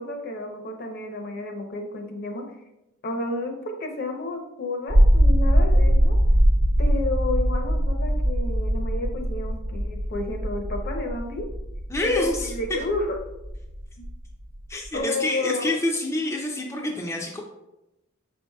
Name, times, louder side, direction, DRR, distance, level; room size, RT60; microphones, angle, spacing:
voice 1, 0.0-2.5 3.0-6.2 6.8-11.5 12.0-13.2 14.0-14.1 14.9-15.7, left 2 dB, 50° left, 4 dB, 0.6 m, -31 dB
sound 1, 4.9-15.0, equal, 60° right, 0.7 m, -22 dB
voice 2, 11.9-12.8 14.7-17.4, left 1 dB, 15° left, -1 dB, 0.4 m, -27 dB
4.9 x 4.6 x 2.2 m, 0.93 s
head